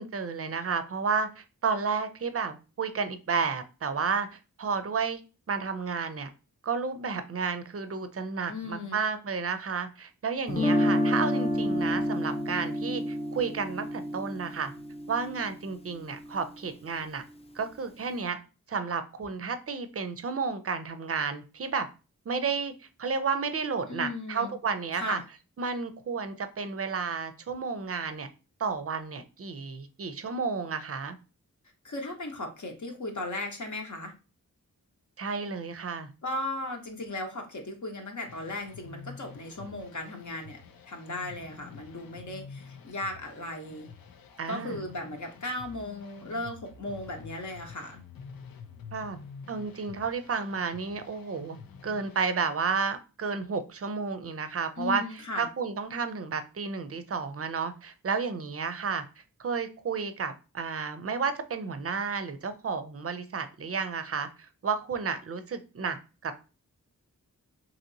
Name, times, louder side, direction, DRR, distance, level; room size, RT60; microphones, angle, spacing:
voice 1, 0.0-5.2 5.5-6.3 6.6-14.7 15.1-17.2 17.5-18.4 18.7-21.9 22.3-22.7 23.0-25.2 25.6-28.3 28.6-31.2 35.2-36.1 44.4-44.9 48.9-49.2 49.5-51.6 51.8-59.0 59.4-66.0 66.2-66.4, right 5 dB, 45° right, 10 dB, 0.5 m, -32 dB
voice 2, 8.5-9.0 23.9-24.5 25.0-25.2 31.8-34.1 36.2-40.6 40.9-43.9 44.5-48.0 54.8-55.5, left 2 dB, 55° left, 3 dB, 0.8 m, -36 dB
Guitar, 10.5-16.5, left 1 dB, 20° left, 0.3 m, -29 dB
sound 1, 38.3-52.3, left 5 dB, 85° left, 0.5 m, -48 dB
2.9 x 2.8 x 2.6 m, 0.31 s
wide cardioid pair, 75°, 34 cm